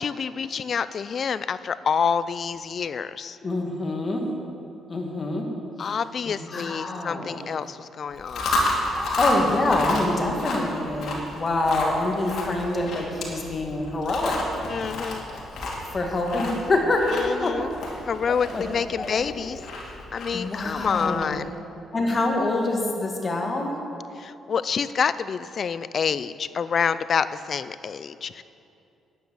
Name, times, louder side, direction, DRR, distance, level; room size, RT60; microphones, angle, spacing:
voice 1, 0.0-3.4 5.8-8.5 14.7-15.2 17.1-17.7 18.1-19.6 20.1-21.5 24.2-28.4, left 6 dB, 50° left, 15 dB, 0.4 m, -27 dB
voice 2, 3.4-4.3 4.9-5.5 6.2-7.4 9.2-14.5 15.9-17.1 17.4-17.5 18.5-18.6 19.0-19.1 20.3-21.3 21.9-23.8, left 2 dB, 35° left, 1 dB, 2.0 m, -26 dB
Chewing mastication, 8.1-21.4, left 2 dB, 70° left, 2.5 m, -30 dB
10.5 x 9.2 x 7.1 m, 2.6 s
cardioid pair, 90°, 0 cm